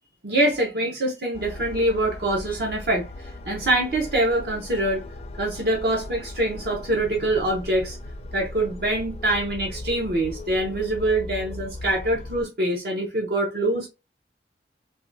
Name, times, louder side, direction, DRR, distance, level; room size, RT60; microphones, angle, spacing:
voice 1, 0.2-5.0 5.4-8.0 8.3-13.9, right 1 dB, 55° right, 0.7 m, -24 dB
sound 1, 1.3-12.4, left 1 dB, 35° left, 0.4 m, -38 dB
3.5 x 2.2 x 2.5 m
head